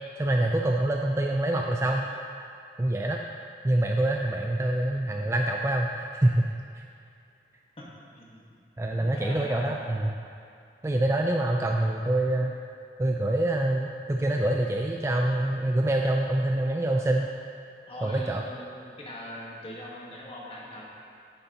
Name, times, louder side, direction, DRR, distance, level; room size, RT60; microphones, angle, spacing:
voice 1, 0.2-2.1 2.8-3.2 3.6-6.5 6.8-6.9 8.8-10.1 10.8-12.5 13.0-17.3 18.0-18.4, right 1 dB, 15° right, 1 dB, 0.3 m, -25 dB
voice 2, 7.8-8.6 9.0-10.2 17.9-20.9, left 1 dB, 30° left, -4 dB, 1.4 m, -42 dB
9.7 x 8.9 x 2.9 m, 2.5 s
head